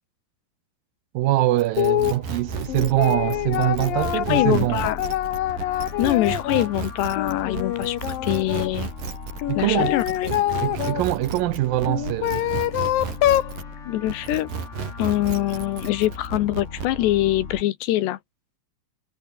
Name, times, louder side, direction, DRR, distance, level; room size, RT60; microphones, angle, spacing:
voice 1, 1.1-4.9 9.5-10.0 10.3-12.7, right 16 dB, 75° right, 2.1 m, -23 dB
sound 1, 1.6-13.7 14.1-16.9, right 6 dB, 55° right, 5.9 m, -33 dB
sound 2, 1.8-2.2 2.7-6.7 7.1-8.7 9.4-11.0 11.8-13.5, left 13 dB, 65° left, 2.6 m, -25 dB
sound 3, 1.8-17.6, left 4 dB, 35° left, 1.2 m, -39 dB
voice 2, 4.3-5.0 6.0-8.9 9.6-10.4 13.9-14.5 15.0-18.2, left 15 dB, 80° left, 3.3 m, -24 dB
omnidirectional pair, 4.9 m